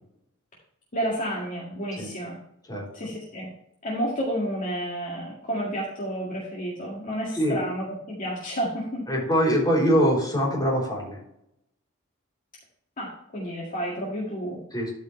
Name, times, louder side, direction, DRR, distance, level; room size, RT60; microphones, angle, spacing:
voice 1, 0.9-2.4 2.9-3.5 3.8-9.1 13.0-14.6, equal, 40° left, -5 dB, 2.0 m, -31 dB
voice 2, 2.7-3.1 7.3-7.6 9.1-11.2 14.7-14.9, equal, 20° left, -4 dB, 3.6 m, -23 dB
13.0 x 5.3 x 3.2 m, 0.76 s
head